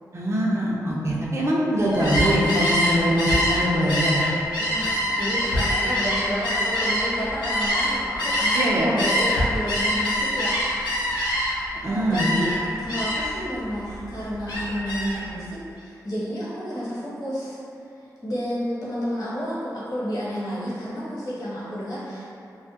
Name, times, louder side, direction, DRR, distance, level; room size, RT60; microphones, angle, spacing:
voice 1, 0.1-4.2 8.5-8.9 11.8-12.3, equal, 40° right, -5 dB, 0.5 m, -23 dB
Gull seagull, 1.9-8.7 9.0-11.7 12.1-12.6 12.9-13.4 13.7-15.2, equal, 85° left, 0.5 m, -24 dB
voice 2, 4.6-11.0 11.8-12.5 12.8-17.6 18.2-22.3, equal, 65° left, -8 dB, 0.9 m, -31 dB
2.3 x 2.1 x 2.7 m, 2.6 s
cardioid pair, 50°, 7 cm